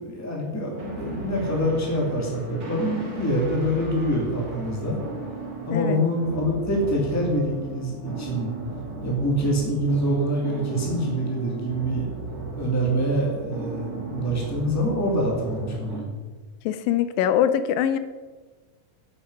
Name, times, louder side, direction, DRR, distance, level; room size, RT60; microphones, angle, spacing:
voice 1, 0.0-5.0 5.7-8.5 9.0-12.1 12.6-16.0, equal, 5° left, -2 dB, 1.6 m, -25 dB
sound 1, 0.7-16.0, right 4 dB, 30° right, 2.1 m, -36 dB
voice 2, 5.7-6.0 16.7-18.0, left 9 dB, 85° left, 11 dB, 2.3 m, -23 dB
9.4 x 7.7 x 5.4 m, 1.3 s
omnidirectional pair, 3.9 m